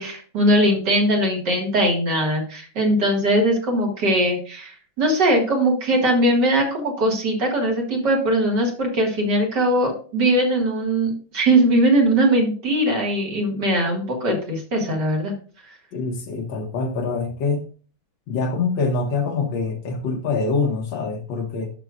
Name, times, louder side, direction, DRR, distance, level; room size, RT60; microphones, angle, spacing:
voice 1, 0.0-15.3, right 1 dB, 60° right, 2.4 m, -20 dB
voice 2, 15.9-17.7 18.3-21.7, left 4 dB, 75° left, 1.5 m, -25 dB
12.0 x 5.9 x 2.4 m
omnidirectional pair, 2.1 m